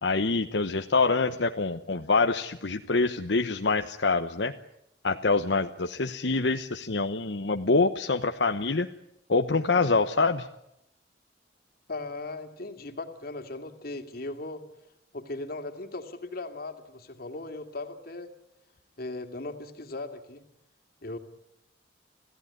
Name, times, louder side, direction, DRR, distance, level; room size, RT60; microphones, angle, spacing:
voice 1, 0.0-4.5 5.0-8.9 9.3-10.5, left 3 dB, 80° left, 6 dB, 1.0 m, -25 dB
voice 2, 11.9-14.6 15.1-18.3 19.0-20.4 21.0-21.2, left 2 dB, 55° left, 6 dB, 2.6 m, -38 dB
27.5 x 16.0 x 9.9 m, 0.83 s
head